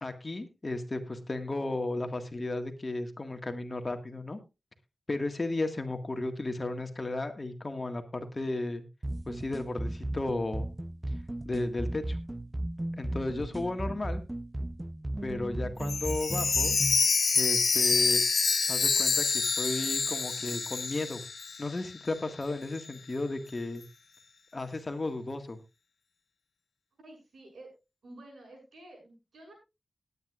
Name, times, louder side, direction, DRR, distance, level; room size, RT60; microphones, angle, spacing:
voice 1, 0.0-4.4 5.1-8.8 9.3-10.7 11.4-12.2 13.0-14.2 15.2-16.8 17.3-18.2 18.7-21.2 21.6-23.8 24.5-25.6, left 2 dB, 35° left, 7 dB, 1.8 m, -34 dB
sound 1, 9.0-17.0, right 1 dB, 20° right, 0.6 m, -35 dB
Chime, 15.8-21.8 22.1-22.2 22.8-22.9, left 5 dB, 65° left, 1.2 m, -27 dB
voice 2, 27.0-27.7 28.0-29.5, right 1 dB, 85° right, 1 dB, 7.3 m, -50 dB
20.0 x 9.7 x 2.5 m, 0.26 s
wide cardioid pair, 75°, 0 cm